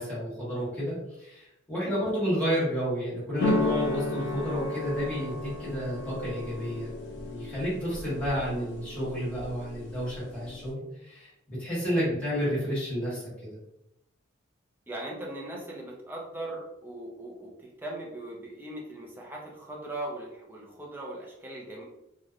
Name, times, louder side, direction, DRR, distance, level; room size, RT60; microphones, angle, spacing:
voice 1, 0.0-13.6, equal, 5° left, -11 dB, 1.3 m, -31 dB
sound 1, 3.4-10.7, left 2 dB, 60° left, 0.5 m, -33 dB
voice 2, 14.9-21.8, right 1 dB, 10° right, -2 dB, 0.4 m, -39 dB
2.8 x 2.1 x 2.3 m, 0.86 s
head